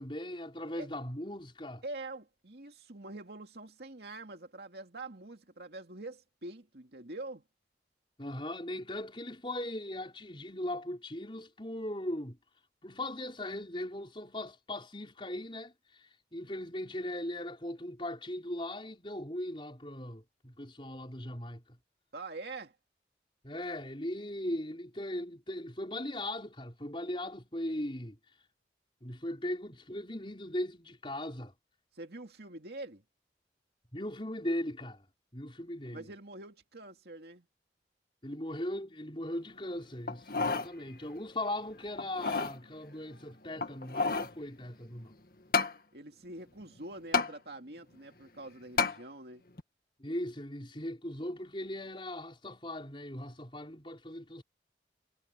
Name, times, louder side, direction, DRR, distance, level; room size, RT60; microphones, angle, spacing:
voice 1, 0.0-1.8 8.2-12.4 12.8-21.8 23.4-28.2 29.0-31.5 33.9-35.1 35.3-36.1 38.2-45.1 50.0-54.4, left 1 dB, 30° left, 5.4 m, -39 dB
voice 2, 1.8-7.4 22.1-22.8 31.9-33.0 35.9-37.5 45.9-49.4, right 2 dB, 65° right, 2.4 m, -45 dB
sound 1, 40.1-40.7 41.2-41.3 42.0-42.6 43.6-44.4 45.5-45.8 47.1-47.3 48.8-49.0 49.6-49.7, left 4 dB, 55° left, 1.9 m, -30 dB
head